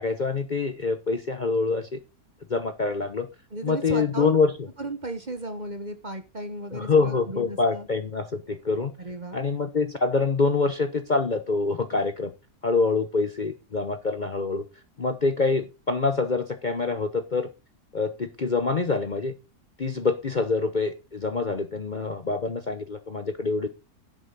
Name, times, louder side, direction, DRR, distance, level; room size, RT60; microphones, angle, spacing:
voice 1, 0.0-2.0 2.5-3.3 3.6-4.5 6.7-8.9 9.3-12.3 12.6-14.6 15.0-17.5 17.9-19.3 19.8-23.7, left 4 dB, 35° left, 8 dB, 0.9 m, -25 dB
voice 2, 3.5-4.3 4.8-7.9 9.0-9.6, right 2 dB, 30° right, 9 dB, 1.2 m, -34 dB
10.5 x 8.2 x 4.1 m, 0.28 s
omnidirectional pair, 1.6 m